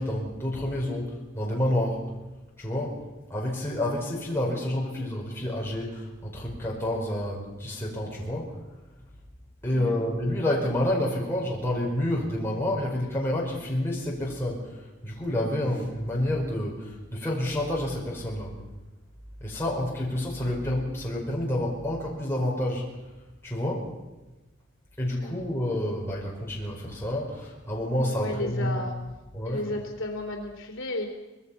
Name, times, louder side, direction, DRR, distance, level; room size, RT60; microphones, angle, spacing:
voice 1, 0.0-2.0 2.6-8.6 9.6-18.6 19.4-22.9 23.4-23.9 25.0-28.9 29.3-29.7, left 1 dB, 10° left, -4 dB, 5.2 m, -29 dB
voice 2, 9.7-10.0 25.2-25.4 28.2-29.0 29.5-31.1, left 1 dB, 75° left, 2 dB, 3.4 m, -33 dB
24.5 x 20.5 x 5.8 m, 1.1 s
head